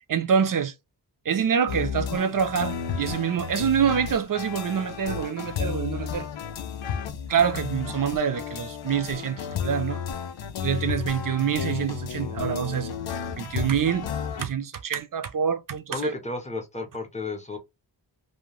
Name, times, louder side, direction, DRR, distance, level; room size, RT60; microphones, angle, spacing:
voice 1, 0.1-0.7 1.3-6.3 7.3-10.0 10.6-14.1 14.4-16.1, right 7 dB, 50° right, 0.5 m, -26 dB
sound 1, 1.7-14.4, left 7 dB, 85° left, 0.6 m, -33 dB
voice 2, 15.9-17.6, left 3 dB, 15° left, 0.6 m, -33 dB
2.6 x 2.2 x 2.9 m
wide cardioid pair, 140°, 44 cm